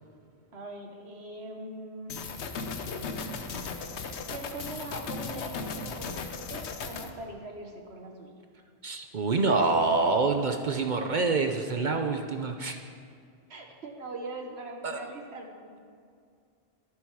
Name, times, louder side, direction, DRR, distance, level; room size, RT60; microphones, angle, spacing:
voice 1, 0.5-2.2 4.3-8.3 13.5-15.8, right 2 dB, 75° right, 3 dB, 1.6 m, -41 dB
sound 1, 2.1-7.1, left 4 dB, 85° left, 1.2 m, -36 dB
voice 2, 8.8-12.8 14.8-15.0, right 3 dB, 50° right, 5 dB, 0.8 m, -26 dB
13.0 x 11.0 x 4.8 m, 2.3 s
omnidirectional pair, 1.1 m